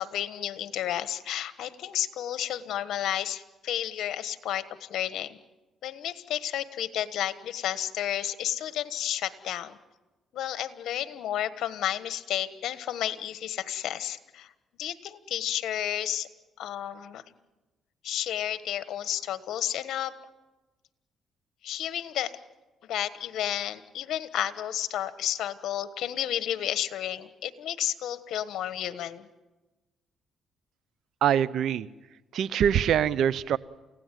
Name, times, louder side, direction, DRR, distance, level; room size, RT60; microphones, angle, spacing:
voice 1, 0.0-5.4 5.8-9.8 10.3-14.5 14.8-16.3 16.6-17.2 18.0-20.1 21.6-22.3 22.9-29.3, left 11 dB, 75° left, 13 dB, 1.3 m, -32 dB
voice 2, 31.2-31.9 32.3-33.6, right 9 dB, 70° right, 18 dB, 0.7 m, -24 dB
29.0 x 17.0 x 9.3 m, 1.2 s
cardioid pair, 90°, 0 cm